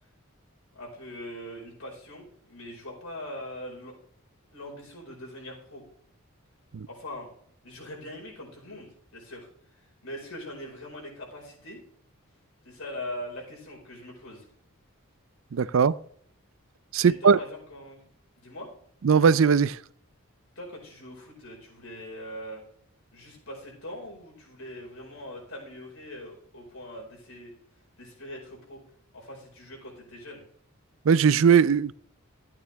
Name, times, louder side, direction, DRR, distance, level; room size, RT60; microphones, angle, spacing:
voice 1, 0.7-3.9 4.5-5.8 6.9-7.3 7.6-9.5 10.0-11.8 12.6-14.5 17.0-18.1 18.4-18.7 20.5-22.6 23.1-27.6 28.0-28.8 29.1-30.4, left 1 dB, 80° left, 5.1 m, -41 dB
voice 2, 15.5-15.9 16.9-17.4 19.0-19.8 31.1-31.9, right 6 dB, 65° right, 0.4 m, -19 dB
14.0 x 8.8 x 3.5 m
head